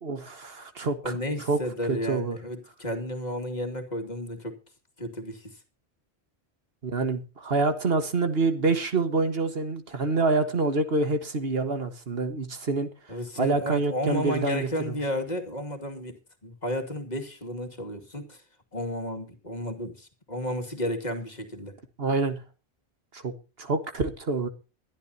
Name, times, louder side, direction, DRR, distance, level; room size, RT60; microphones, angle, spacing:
voice 1, 0.0-1.2 1.5-1.6 1.9-2.4 6.8-12.9 13.4-15.0 22.0-22.4 23.1-24.5, right 3 dB, 65° right, 1.7 m, -27 dB
voice 2, 1.0-4.6 5.0-5.6 13.1-16.2 16.4-18.4 18.7-21.8, equal, 40° left, 2.6 m, -32 dB
21.5 x 11.5 x 2.8 m
omnidirectional pair, 1.1 m